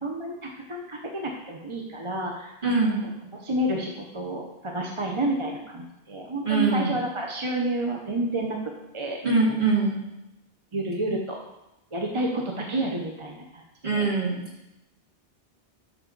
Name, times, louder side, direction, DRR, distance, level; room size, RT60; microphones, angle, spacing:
voice 1, 0.0-2.6 3.4-8.6 8.9-9.2 10.7-11.4 11.9-13.6 13.9-14.1, right 1 dB, 30° right, 1 dB, 0.9 m, -29 dB
voice 2, 2.6-3.1 6.4-7.0 9.2-10.0 13.8-14.4, right 3 dB, 50° right, -4 dB, 2.4 m, -23 dB
12.5 x 6.1 x 4.0 m, 0.92 s
omnidirectional pair, 1.1 m